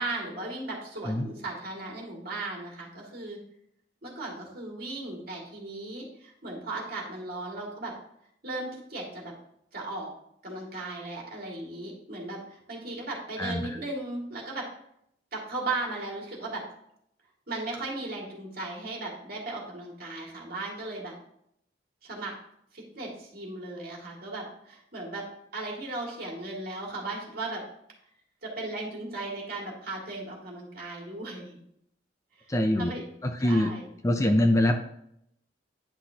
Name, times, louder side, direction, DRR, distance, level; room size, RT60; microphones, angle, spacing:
voice 1, 0.0-3.4 4.0-7.9 8.4-9.3 9.7-10.1 10.4-14.7 15.3-16.6 17.5-21.1 22.0-22.3 22.7-25.3 25.5-27.6 28.4-31.6 32.8-33.0 33.4-33.9, right 2 dB, 55° right, -2 dB, 2.2 m, -36 dB
voice 2, 13.4-13.8 32.5-32.9 33.2-33.7 34.0-34.7, left 1 dB, 15° left, 5 dB, 0.5 m, -24 dB
9.9 x 5.9 x 2.8 m, 0.73 s
head